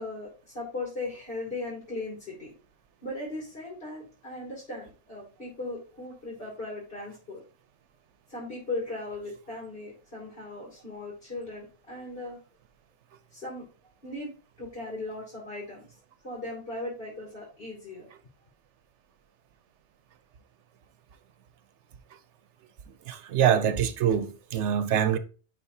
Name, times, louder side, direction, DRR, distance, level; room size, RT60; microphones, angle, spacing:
voice 1, 0.0-2.5 3.0-7.4 8.3-12.4 13.3-13.7 14.0-14.3 14.6-15.9 16.2-18.1, left 2 dB, 55° left, 3.0 m, -38 dB
voice 2, 23.1-25.2, right 9 dB, 80° right, 1.0 m, -24 dB
10.5 x 4.5 x 2.7 m
omnidirectional pair, 1.2 m